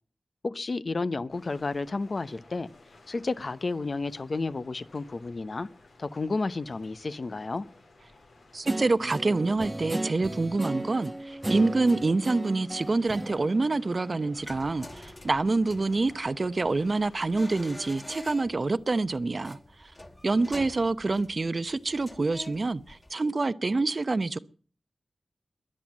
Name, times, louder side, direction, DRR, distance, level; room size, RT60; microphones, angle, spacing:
voice 1, 0.4-2.7 3.1-5.7 6.0-7.6, left 3 dB, 55° left, 0.9 m, -31 dB
sound 1, 1.3-17.6, left 2 dB, 90° left, 4.1 m, -56 dB
voice 2, 8.5-19.9 20.2-24.4, right 3 dB, 50° right, 0.8 m, -27 dB
Guitar, 8.6-14.5, right 1 dB, 20° right, 1.0 m, -36 dB
sound 2, 14.3-23.1, left 1 dB, 30° left, 2.2 m, -46 dB
21.5 x 7.7 x 7.4 m
cardioid pair, 55°, 0 cm